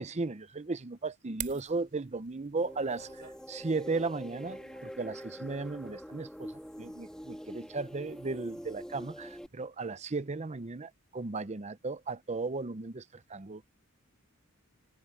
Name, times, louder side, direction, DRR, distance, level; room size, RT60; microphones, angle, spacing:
voice 1, 0.0-3.2 3.5-6.5 6.8-13.6, right 3 dB, 30° right, 0.7 m, -36 dB
sound 1, 1.4-9.7, right 10 dB, 55° right, 2.9 m, -51 dB
sound 2, 2.6-9.5, equal, 5° left, 2.8 m, -45 dB
head